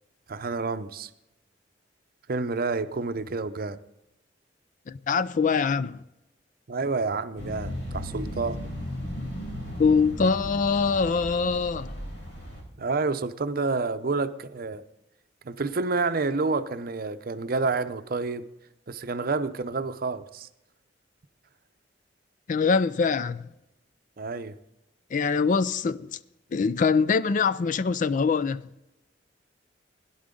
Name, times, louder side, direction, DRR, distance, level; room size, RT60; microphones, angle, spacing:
voice 1, 0.3-1.1 2.3-3.8 6.7-8.6 12.8-14.8 15.4-18.5 18.9-20.5 24.2-24.6, right 3 dB, 55° right, 0.6 m, -29 dB
voice 2, 4.9-6.0 9.8-12.0 22.5-23.5 25.1-26.2 26.5-28.7, left 5 dB, 45° left, 0.4 m, -24 dB
sound 1, 7.4-12.6, equal, 75° left, 4.6 m, -36 dB
17.0 x 11.0 x 3.8 m
head